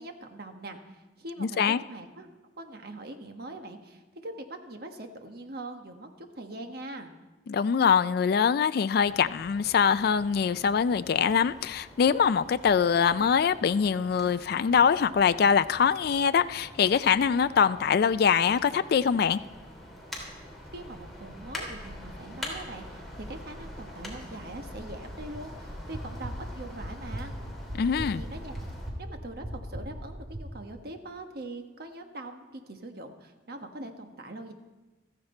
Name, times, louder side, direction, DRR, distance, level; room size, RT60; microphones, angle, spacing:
voice 1, 0.0-7.1 20.7-27.3 28.0-28.6 29.0-34.5, right 2 dB, 60° right, 1.3 m, -42 dB
voice 2, 1.4-1.8 7.5-19.4 27.7-28.2, left 6 dB, 60° left, 0.4 m, -23 dB
sound 1, 8.9-28.9, left 1 dB, ahead, 3.1 m, -45 dB
sound 2, 22.2-30.4, equal, 30° right, 1.8 m, -41 dB
14.5 x 14.0 x 4.4 m
head